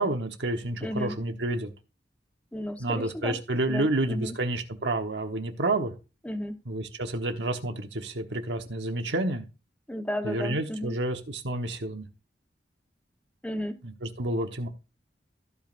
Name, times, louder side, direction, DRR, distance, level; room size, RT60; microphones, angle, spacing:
voice 1, 0.0-1.7 2.8-5.9 6.7-9.4 10.2-12.1 13.8-14.7, right 2 dB, 90° right, 1.2 m, -29 dB
voice 2, 0.8-1.2 2.5-3.4 3.7-4.4 6.2-6.6 9.9-11.0 13.4-13.8, equal, 10° left, 1.1 m, -33 dB
15.5 x 5.3 x 2.6 m
head